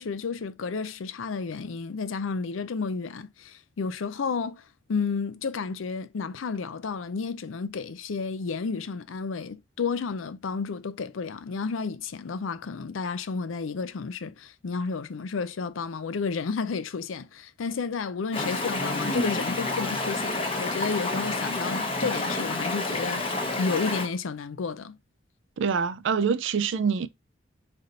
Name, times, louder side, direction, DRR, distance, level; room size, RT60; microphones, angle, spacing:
voice 1, 0.0-4.6 4.9-25.0, left 5 dB, 90° left, 0.5 m, -31 dB
Stream, 18.3-24.1, left 2 dB, 30° left, 0.9 m, -29 dB
voice 2, 25.6-27.1, right 6 dB, 70° right, 0.4 m, -25 dB
4.1 x 3.3 x 3.9 m
head